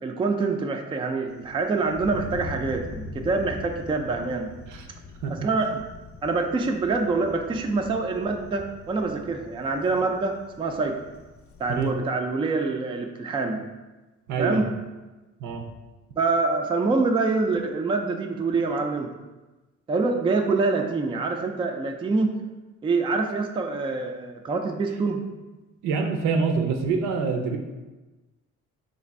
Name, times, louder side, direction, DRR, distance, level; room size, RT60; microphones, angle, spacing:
voice 1, 0.0-4.5 5.3-5.8 6.2-11.0 11.6-13.6 14.4-14.7 16.2-19.1 19.9-22.4 22.8-25.2, right 3 dB, 20° right, 3 dB, 0.3 m, -25 dB
Thunder, 1.3-11.9, left 2 dB, 50° left, 0.5 m, -42 dB
voice 2, 14.3-14.7 15.4-15.6 25.8-27.6, right 5 dB, 80° right, 4 dB, 0.5 m, -26 dB
3.2 x 2.5 x 4.1 m, 1.1 s
cardioid pair, 90°, 30 cm